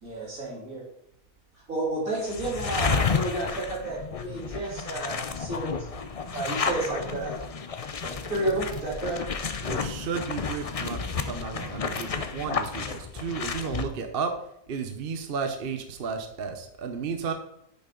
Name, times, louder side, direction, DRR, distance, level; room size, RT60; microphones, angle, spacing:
voice 1, 0.0-0.8 1.5-5.9 6.3-7.5 8.0-9.2, right 2 dB, 70° right, -5 dB, 3.7 m, -31 dB
sound 1, 2.2-13.8, left 5 dB, 65° left, 0.3 m, -31 dB
voice 2, 9.6-14.3 14.7-17.3, right 5 dB, 45° right, 6 dB, 0.9 m, -33 dB
9.7 x 7.1 x 3.8 m, 0.77 s
omnidirectional pair, 1.5 m